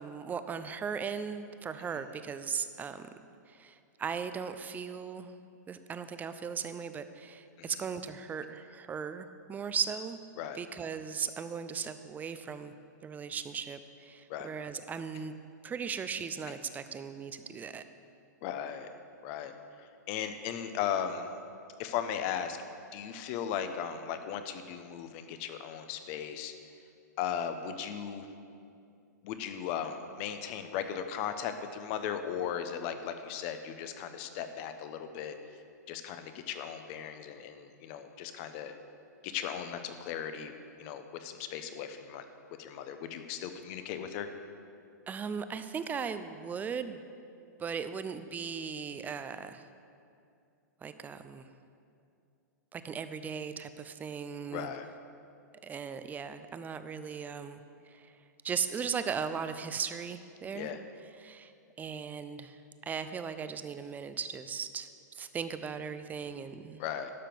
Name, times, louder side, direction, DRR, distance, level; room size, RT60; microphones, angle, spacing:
voice 1, 0.0-3.1 3.5-5.3 5.7-10.2 10.5-12.7 13.0-15.3 15.6-17.8 45.1-47.0 47.6-49.6 50.8-51.5 52.7-54.7 55.6-57.6 57.9-58.1 58.4-60.7 61.2-61.5 61.8-62.6 62.9-66.8, right 6 dB, 15° right, 11 dB, 0.5 m, -37 dB
voice 2, 18.4-18.9 19.2-19.5 19.8-21.3 21.8-22.6 22.9-26.5 27.2-28.3 29.2-35.4 35.9-38.7 39.2-40.5 40.8-42.2 42.6-44.3 54.5-54.9 60.5-60.8 66.8-67.1, left 8 dB, 45° left, 9 dB, 0.9 m, -37 dB
12.0 x 5.8 x 6.9 m, 2.5 s
hypercardioid pair, 115°, 10 cm